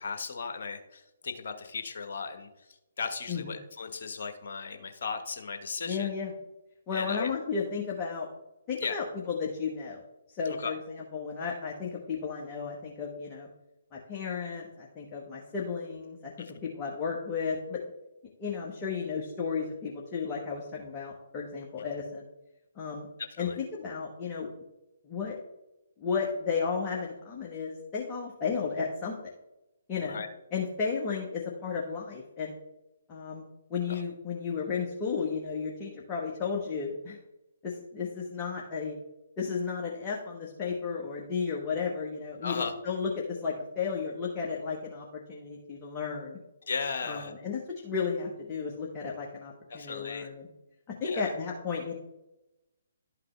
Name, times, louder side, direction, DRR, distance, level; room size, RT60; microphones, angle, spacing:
voice 1, 0.0-2.5 3.0-6.1 6.9-7.3 8.8-9.0 10.4-10.7 16.4-16.5 23.2-23.6 30.0-30.3 33.9-34.0 42.4-42.7 46.7-47.3 49.7-50.3 51.0-51.3, left 5 dB, 55° left, 7 dB, 1.3 m, -36 dB
voice 2, 5.8-6.3 6.9-8.3 8.7-10.0 10.3-13.5 13.9-16.3 16.7-17.8 18.4-22.2 22.8-23.1 23.4-24.5 25.0-25.3 26.0-29.1 29.9-30.2 30.5-32.5 33.1-33.4 33.7-37.2 37.6-38.9 39.4-46.4 47.0-50.5 51.0-51.9, left 5 dB, 20° left, -2 dB, 1.3 m, -33 dB
12.0 x 5.8 x 3.4 m, 0.95 s
figure-of-eight pair, 135°, 0 cm